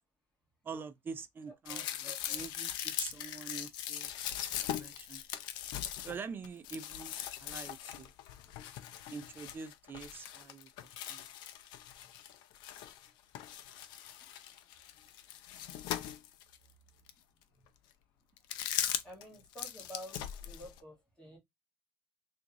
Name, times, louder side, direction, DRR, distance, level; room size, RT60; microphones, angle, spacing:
voice 1, 0.6-4.1 4.8-5.2 6.0-8.1 9.1-10.7 11.1-11.2, right 5 dB, 30° right, 0.5 m, -45 dB
sound 1, 1.7-13.1 13.3-16.6 17.1-17.2 18.4-19.2 19.5-20.8, left 11 dB, 85° left, 0.5 m, -40 dB
voice 2, 1.7-2.4 14.0-14.1 17.6-17.7 19.0-21.4, equal, 10° left, 1.9 m, -50 dB
3.5 x 2.6 x 2.9 m
cardioid pair, 135°, 8 cm